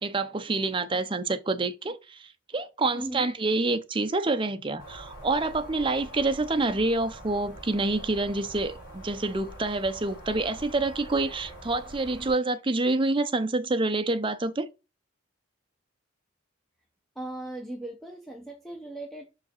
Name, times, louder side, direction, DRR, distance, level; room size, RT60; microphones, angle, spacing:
voice 1, 0.0-2.2 2.5-14.7, right 2 dB, 25° right, 0.6 m, -27 dB
voice 2, 2.9-3.3 17.2-19.3, right 1 dB, ahead, 0.9 m, -38 dB
sound 1, 4.8-12.3, equal, 50° left, 4.6 m, -44 dB
5.8 x 4.8 x 4.4 m
head